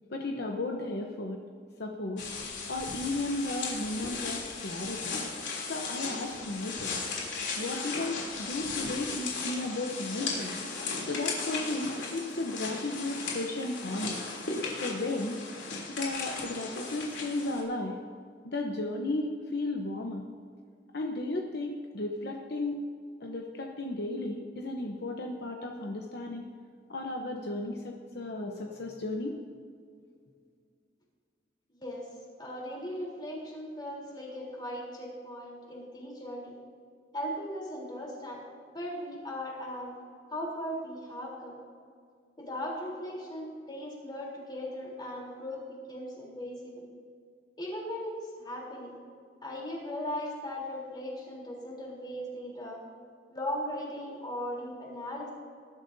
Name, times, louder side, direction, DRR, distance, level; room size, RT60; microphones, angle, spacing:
voice 1, 0.1-1.4 1.8-2.2 2.6-5.1 5.7-7.0 7.5-10.6 11.0-15.4 15.9-18.0 18.4-20.2 20.9-22.8 23.2-26.5 26.9-29.4, left 2 dB, 60° left, 1 dB, 0.9 m, -34 dB
sound 1, 2.2-17.6, left 4 dB, 90° left, 3.1 m, -36 dB
voice 2, 31.8-32.1 32.4-36.5 37.1-38.4 38.7-39.9 40.3-41.5 42.4-46.8 47.6-49.0 49.4-52.8 53.3-55.3, equal, 25° left, -3 dB, 3.6 m, -38 dB
20.0 x 11.5 x 2.7 m, 2.2 s
head